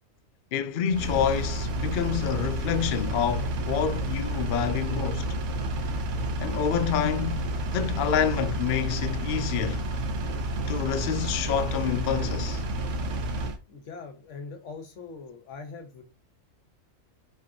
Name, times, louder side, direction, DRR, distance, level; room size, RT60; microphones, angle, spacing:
voice 1, 0.5-5.3 6.4-7.5 7.7-9.8 10.7-12.6, left 8 dB, 80° left, 0.4 m, -28 dB
Engine, 0.9-13.6, right 1 dB, 65° right, 1.0 m, -30 dB
voice 2, 13.7-16.0, left 4 dB, 65° left, 1.3 m, -42 dB
5.0 x 3.4 x 2.8 m
omnidirectional pair, 1.4 m